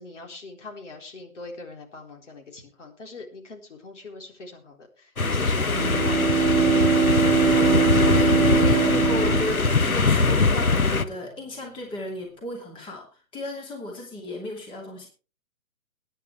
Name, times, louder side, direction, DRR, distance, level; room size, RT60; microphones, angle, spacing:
voice 1, 0.0-4.9 5.2-6.2 6.6-7.1 7.6-7.9, left 3 dB, 60° left, 2 dB, 4.2 m, -41 dB
sound 1, 5.2-11.0, left 3 dB, 85° left, 1.2 m, -22 dB
Bowed string instrument, 5.7-10.3, right 5 dB, 60° right, 1.0 m, -22 dB
voice 2, 8.1-15.1, left 2 dB, 10° left, 0 dB, 2.6 m, -34 dB
22.0 x 10.0 x 3.3 m, 0.36 s
figure-of-eight pair, 130°, 41 cm